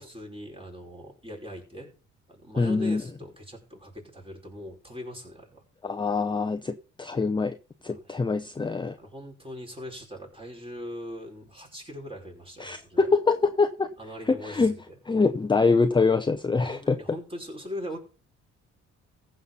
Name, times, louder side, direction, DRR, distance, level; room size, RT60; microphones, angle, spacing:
voice 1, 0.0-1.9 2.3-5.6 7.9-8.1 9.0-13.1 14.0-15.0 16.6-18.0, equal, 20° right, 5.4 m, -40 dB
voice 2, 2.6-3.0 5.8-7.6 7.8-9.0 12.6-13.9 14.3-14.8 15.1-17.0, left 4 dB, 15° left, 0.7 m, -24 dB
15.0 x 5.7 x 5.7 m
cardioid pair, 90°, 30 cm